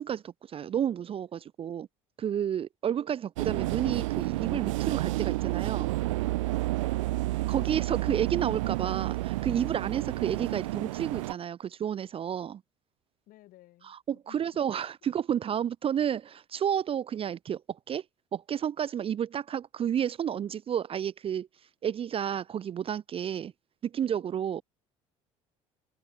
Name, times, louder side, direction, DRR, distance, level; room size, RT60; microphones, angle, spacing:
voice 1, 0.0-1.9 2.2-5.9 7.5-12.6 13.8-18.0 18.3-21.5 21.8-23.5 23.8-24.6, right 9 dB, 35° right, 0.6 m, -31 dB
sound 1, 3.4-11.3, right 19 dB, 70° right, 0.6 m, -30 dB
voice 2, 6.8-7.7 13.3-14.6, left 16 dB, 55° left, 7.1 m, -57 dB
figure-of-eight pair, 60°, 17 cm